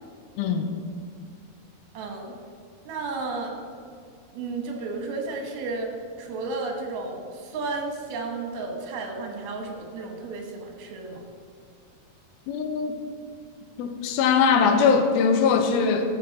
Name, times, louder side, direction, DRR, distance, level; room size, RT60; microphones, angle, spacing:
voice 1, 0.4-0.7 12.5-12.9 13.8-16.2, left 5 dB, 85° left, 6 dB, 2.6 m, -21 dB
voice 2, 1.9-2.3 2.9-3.6 4.3-11.2, right 3 dB, 80° right, 2 dB, 3.2 m, -33 dB
13.0 x 6.8 x 4.1 m, 2.1 s
omnidirectional pair, 4.3 m